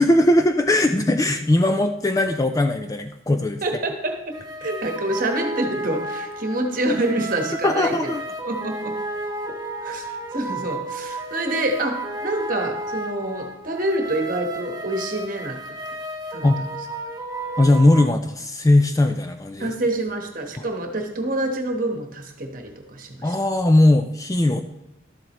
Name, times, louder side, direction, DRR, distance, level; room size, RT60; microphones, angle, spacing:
voice 1, 0.0-3.6 7.6-8.2 16.4-16.6 17.6-19.7 23.2-24.6, left 1 dB, 15° left, 7 dB, 0.3 m, -19 dB
voice 2, 3.6-8.1 8.4-9.0 9.8-15.6 16.3-16.5 19.6-23.4, right 1 dB, 40° right, 4 dB, 1.2 m, -27 dB
sound 1, 4.3-18.0, right 2 dB, 20° right, 0.8 m, -32 dB
12.0 x 7.6 x 3.0 m, 0.91 s
head